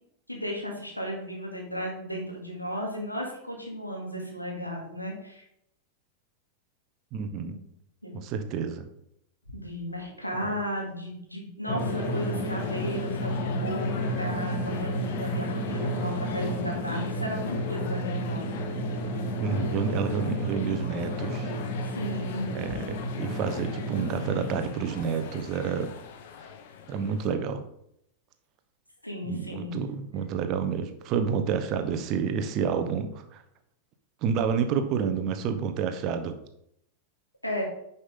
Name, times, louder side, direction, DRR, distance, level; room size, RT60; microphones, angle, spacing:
voice 1, 0.3-5.4 7.4-7.6 8.0-8.1 9.5-18.5 21.8-22.8 29.0-29.7 37.4-37.6, equal, 85° left, -1 dB, 2.4 m, -34 dB
voice 2, 7.1-7.6 8.1-8.9 19.4-21.5 22.5-25.9 26.9-27.6 29.2-33.4 34.2-36.3, right 6 dB, 40° right, 9 dB, 1.0 m, -29 dB
Drum, 11.7-24.6, equal, 35° left, 2.2 m, -31 dB
sound 1, 11.8-27.4, left 7 dB, 55° left, 1.0 m, -43 dB
9.7 x 5.6 x 3.7 m, 0.76 s
figure-of-eight pair, 90°, 0 cm